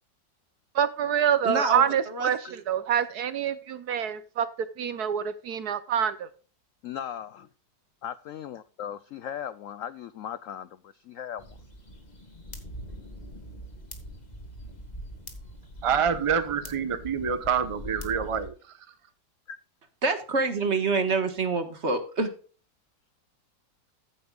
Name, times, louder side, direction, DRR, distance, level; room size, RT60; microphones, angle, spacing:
voice 1, 0.7-4.5 4.8-6.3, right 8 dB, 65° right, 1.2 m, -26 dB
voice 2, 1.4-2.6 20.0-22.3, right 3 dB, 40° right, 1.6 m, -27 dB
voice 3, 6.8-7.5 8.0-11.6 19.5-19.6, left 9 dB, 75° left, 0.7 m, -38 dB
sound 1, 11.4-18.5, equal, 25° left, 2.0 m, -43 dB
voice 4, 15.8-18.5, right 7 dB, 25° right, 0.8 m, -26 dB
15.0 x 8.7 x 2.4 m
omnidirectional pair, 2.0 m